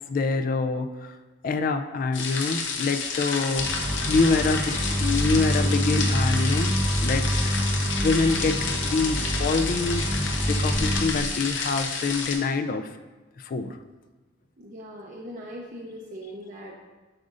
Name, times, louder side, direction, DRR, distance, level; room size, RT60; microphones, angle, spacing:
voice 1, 0.1-1.2 1.4-3.7 4.1-4.7 5.0-7.3 8.0-12.9 13.4-13.8, left 3 dB, 45° left, 8 dB, 0.3 m, -26 dB
sound 1, 2.1-12.4, left 5 dB, 80° left, 0.8 m, -30 dB
sound 2, 3.6-11.0, equal, 20° right, 1.0 m, -26 dB
voice 2, 14.6-16.8, equal, 45° right, -2 dB, 0.6 m, -40 dB
7.7 x 4.9 x 2.5 m, 1.2 s
head